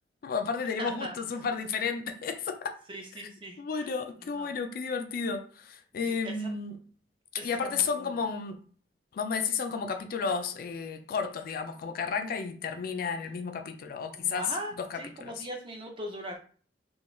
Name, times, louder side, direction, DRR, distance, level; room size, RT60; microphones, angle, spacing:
voice 1, 0.2-2.7 3.6-6.8 7.4-8.6 9.1-14.5 14.8-15.3, left 5 dB, 55° left, 0.3 m, -32 dB
voice 2, 0.8-1.1 2.9-3.9 4.3-4.5 6.1-6.5 7.4-8.1 14.1-16.4, right 1 dB, 30° right, 0.5 m, -40 dB
2.4 x 2.2 x 3.0 m
head